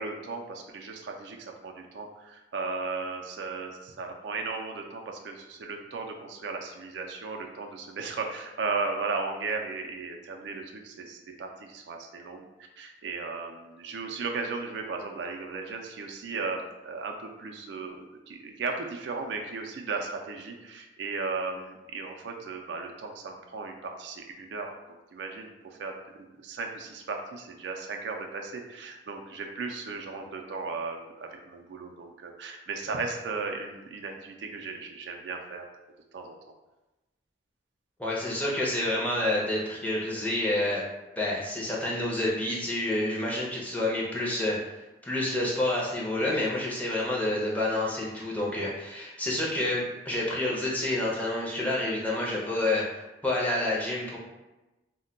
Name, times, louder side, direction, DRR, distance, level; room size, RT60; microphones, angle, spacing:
voice 1, 0.0-12.4 12.8-24.7 25.1-25.9 26.4-35.6 36.1-36.4, right 4 dB, 75° right, 3 dB, 0.4 m, -36 dB
voice 2, 38.0-40.8 41.2-44.6 45.0-52.8 53.2-54.2, left 1 dB, 10° left, -5 dB, 0.5 m, -28 dB
2.1 x 2.1 x 3.7 m, 1.0 s
head